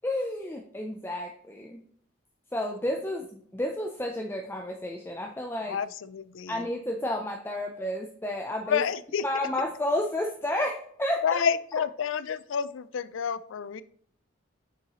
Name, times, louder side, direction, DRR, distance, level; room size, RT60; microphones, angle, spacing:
voice 1, 0.0-1.8 2.5-5.8 6.5-8.8 9.2-11.4, left 1 dB, 10° left, 2 dB, 0.5 m, -31 dB
voice 2, 5.7-6.7 8.7-9.2 11.2-13.8, left 7 dB, 80° left, 15 dB, 0.4 m, -29 dB
6.8 x 6.4 x 3.0 m, 0.63 s
head